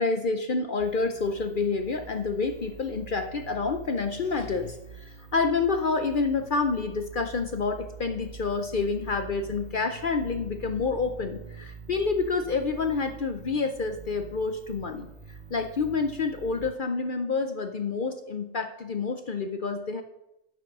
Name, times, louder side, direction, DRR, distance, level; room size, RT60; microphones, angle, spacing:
voice 1, 0.0-15.1 15.5-20.0, left 4 dB, 50° left, 7 dB, 0.7 m, -28 dB
sound 1, 0.8-16.7, right 5 dB, 35° right, 2.0 m, -45 dB
10.0 x 6.0 x 6.1 m, 0.88 s
omnidirectional pair, 1.3 m